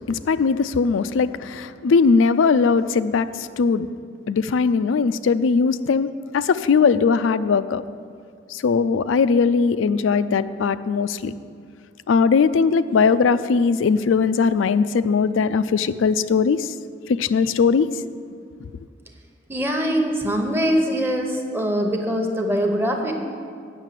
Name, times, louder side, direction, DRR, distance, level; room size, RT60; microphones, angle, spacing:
voice 1, 0.1-3.3 3.6-3.9 4.3-6.1 6.3-7.8 8.5-11.3 12.1-16.7 17.1-17.9, left 5 dB, 85° left, 14 dB, 0.4 m, -19 dB
voice 2, 19.5-23.1, equal, 10° right, 3 dB, 0.9 m, -22 dB
9.0 x 6.6 x 7.5 m, 2.2 s
head